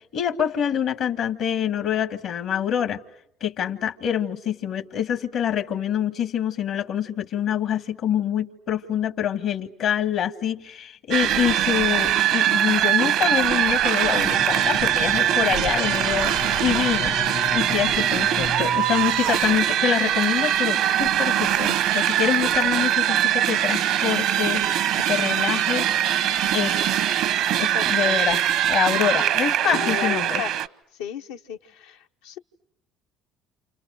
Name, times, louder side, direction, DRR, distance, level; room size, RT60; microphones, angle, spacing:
voice 1, 0.1-3.0 3.4-17.1 17.5-24.6 25.1-25.8 26.5-27.0 27.6-28.4 28.7-30.4, left 9 dB, 65° left, 1.5 m, -26 dB
sound 1, 11.1-30.7, right 11 dB, 70° right, 1.0 m, -22 dB
sound 2, 13.4-14.6 15.4-17.6 18.7-20.1 21.2-23.1, right 11 dB, 85° right, 2.0 m, -36 dB
Bowed string instrument, 14.1-19.8, left 7 dB, 50° left, 1.0 m, -35 dB
voice 2, 27.7-28.4 29.7-30.6 31.0-32.4, left 8 dB, 90° left, 1.2 m, -34 dB
29.5 x 28.5 x 6.4 m
supercardioid pair, 80°, 0 cm